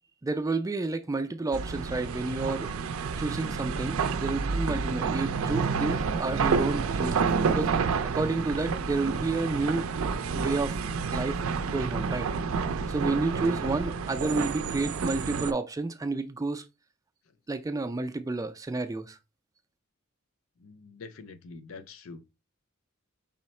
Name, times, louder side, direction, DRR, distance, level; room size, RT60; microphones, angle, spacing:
voice 1, 0.2-2.7 3.2-9.8 10.3-10.8 11.1-11.4 11.7-12.3 12.9-16.6 17.5-19.2, right 3 dB, 15° right, 0.3 m, -30 dB
sound 1, 1.5-15.5, right 5 dB, 85° right, 0.4 m, -29 dB
voice 2, 20.6-22.3, left 4 dB, 75° left, 0.6 m, -45 dB
5.5 x 2.0 x 4.2 m
head